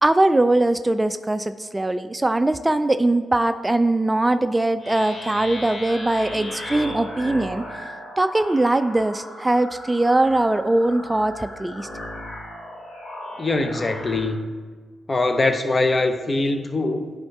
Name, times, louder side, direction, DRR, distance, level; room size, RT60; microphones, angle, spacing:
voice 1, 0.0-7.6 8.2-11.9, right 2 dB, 20° right, 11 dB, 0.3 m, -21 dB
sound 1, 4.8-14.3, left 1 dB, 60° left, 1.5 m, -36 dB
voice 2, 13.4-14.5 15.1-17.1, left 2 dB, 40° left, 7 dB, 0.7 m, -22 dB
9.6 x 3.6 x 4.1 m, 1.5 s
supercardioid pair, 40°, 0 cm